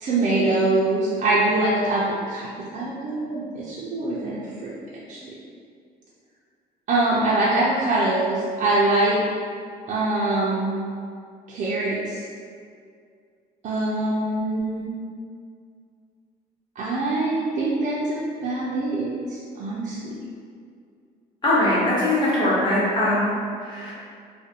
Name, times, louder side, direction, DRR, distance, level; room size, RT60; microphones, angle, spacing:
voice 1, 0.0-4.7 5.1-5.2 6.9-9.2 9.9-10.8 11.5-12.2 13.6-14.9 16.8-20.2, right 2 dB, 45° right, -7 dB, 0.4 m, -24 dB
voice 2, 21.4-23.3 23.7-23.9, left 1 dB, 25° left, -9 dB, 0.9 m, -21 dB
2.4 x 2.1 x 2.7 m, 2.3 s
cardioid pair, 110°, 17 cm